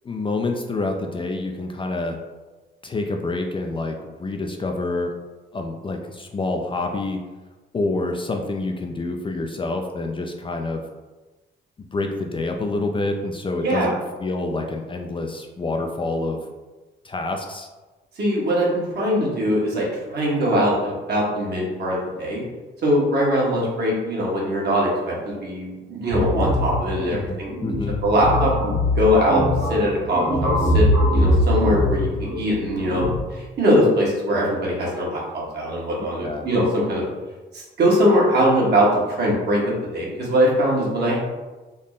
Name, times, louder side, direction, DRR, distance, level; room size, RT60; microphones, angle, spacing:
voice 1, 0.0-2.2 2.8-5.1 5.5-7.2 7.7-10.8 11.9-16.4 17.0-17.7 27.1-28.0 36.2-36.5, left 2 dB, 25° left, 3 dB, 0.4 m, -27 dB
voice 2, 18.2-22.4 22.8-27.5 28.0-28.7 28.9-29.4 29.7-37.0 37.5-39.6 39.9-41.2, equal, 55° right, -4 dB, 1.4 m, -21 dB
sound 1, 26.1-33.2, left 1 dB, 85° right, 1.3 m, -22 dB
3.7 x 2.0 x 3.9 m, 1.2 s
cardioid pair, 90°, 20 cm